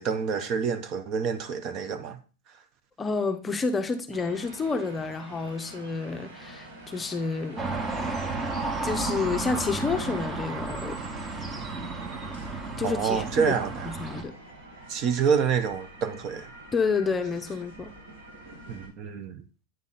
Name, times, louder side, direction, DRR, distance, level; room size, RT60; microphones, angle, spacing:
voice 1, 0.0-2.2 12.8-13.9 14.9-16.5 18.7-19.4, right 6 dB, 40° right, 0.8 m, -27 dB
voice 2, 3.0-7.6 8.0-8.2 8.8-11.0 12.8-13.5 13.8-14.3 16.7-17.9, left 4 dB, 15° left, 0.6 m, -29 dB
sound 1, 4.1-18.9, right 2 dB, 75° right, 3.8 m, -47 dB
sound 2, 7.6-14.2, right 3 dB, 25° right, 1.2 m, -32 dB
8.9 x 3.6 x 4.1 m
supercardioid pair, 130°, 0 cm